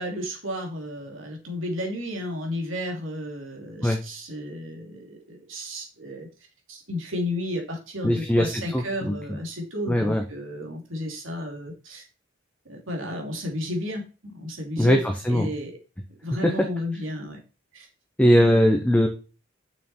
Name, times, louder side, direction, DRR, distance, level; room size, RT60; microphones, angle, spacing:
voice 1, 0.0-6.3 6.7-12.0 12.7-15.0 15.3-15.8 16.2-17.4 17.7-17.9, left 1 dB, 75° right, 2 dB, 2.8 m, -33 dB
voice 2, 8.0-9.2 9.9-10.2 14.8-15.5 16.4-16.7 18.2-19.1, equal, 5° left, 3 dB, 0.7 m, -20 dB
6.5 x 6.5 x 4.3 m, 0.32 s
head